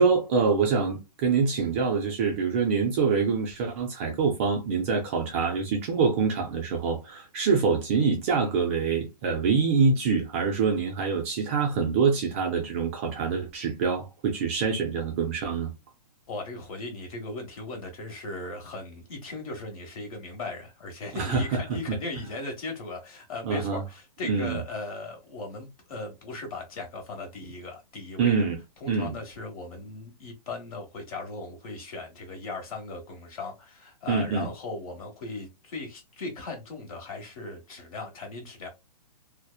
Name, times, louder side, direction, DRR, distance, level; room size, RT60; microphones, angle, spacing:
voice 1, 0.0-15.7 21.1-21.4 21.9-22.0 23.4-23.8 24.2-24.6 28.2-28.6 28.9-29.2 34.1-34.5, right 5 dB, 20° right, 0.3 m, -25 dB
voice 2, 16.3-28.4 28.8-38.7, left 3 dB, 55° left, 1.2 m, -38 dB
2.8 x 2.0 x 2.2 m
hypercardioid pair, 160°, 21 cm